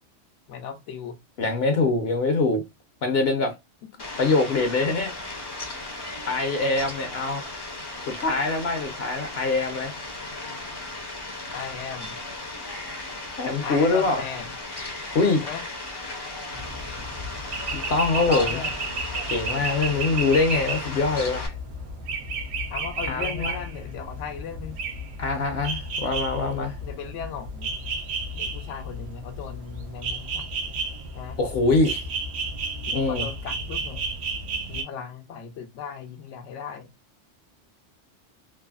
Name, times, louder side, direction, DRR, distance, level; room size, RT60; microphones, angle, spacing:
voice 1, 0.5-1.2 3.8-3.9 11.5-12.2 13.6-14.5 15.4-15.6 18.3-18.7 22.7-24.7 26.8-27.8 28.3-30.5 31.1-31.4 32.9-34.0 34.7-36.9, left 7 dB, 85° left, 0.9 m, -37 dB
voice 2, 1.4-2.6 3.0-3.5 4.2-5.1 6.3-7.4 8.1-9.9 13.4-14.2 15.1-15.4 17.7-18.6 19.3-21.5 23.1-23.6 25.2-26.8 31.4-32.0 32.9-33.3, left 3 dB, 65° left, 0.8 m, -24 dB
Fowl, 4.0-21.5, left 2 dB, 35° left, 0.4 m, -36 dB
sound 1, 16.5-34.8, right 3 dB, 80° right, 1.1 m, -32 dB
3.2 x 2.0 x 2.2 m
omnidirectional pair, 1.2 m